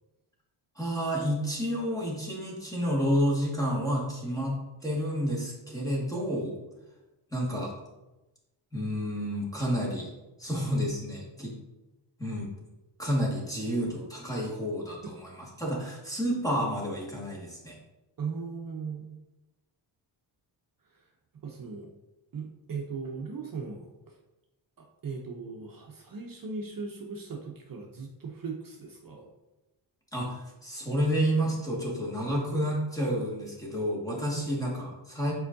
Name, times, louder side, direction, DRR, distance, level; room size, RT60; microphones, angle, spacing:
voice 1, 0.8-6.6 7.3-7.7 8.7-10.1 10.4-11.5 12.2-12.5 13.0-15.3 15.6-17.7 30.1-35.3, equal, 5° left, -4 dB, 1.8 m, -30 dB
voice 2, 18.2-19.2 20.9-21.1 21.4-21.9 22.3-24.2 24.8-29.3, right 5 dB, 45° right, 0 dB, 0.8 m, -38 dB
8.2 x 4.5 x 2.7 m, 1.0 s
wide cardioid pair, 115°, 47 cm